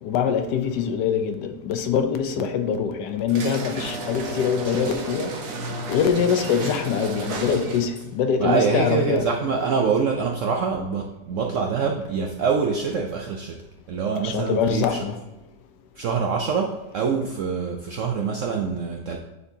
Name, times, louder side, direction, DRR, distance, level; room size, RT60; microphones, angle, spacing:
voice 1, 0.0-5.3 5.9-9.3 14.2-15.2, left 7 dB, 75° left, 1.2 m, -24 dB
sound 1, 3.3-8.0, right 2 dB, 55° right, 1.1 m, -32 dB
voice 2, 8.4-13.6 13.9-15.0 16.0-19.2, right 5 dB, 75° right, 0.7 m, -25 dB
9.5 x 4.3 x 2.7 m
omnidirectional pair, 1.9 m